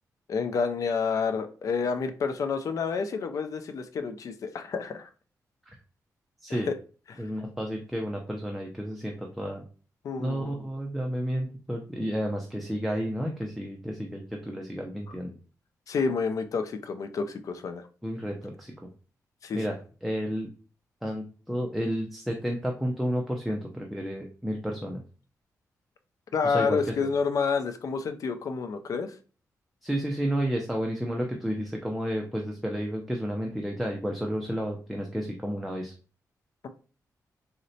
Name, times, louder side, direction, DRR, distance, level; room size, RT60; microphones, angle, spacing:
voice 1, 0.3-5.1 6.5-6.7 7.1-7.2 10.0-10.6 15.9-17.8 19.4-19.6 26.3-29.1, left 5 dB, 60° left, 8 dB, 0.4 m, -29 dB
voice 2, 7.2-9.6 10.2-15.3 18.0-18.7 19.5-19.7 20.0-20.5 21.0-25.0 26.4-27.1 29.8-35.9, equal, ahead, 1 dB, 0.4 m, -31 dB
3.8 x 2.1 x 2.6 m, 0.38 s
cardioid pair, 105°, 6 cm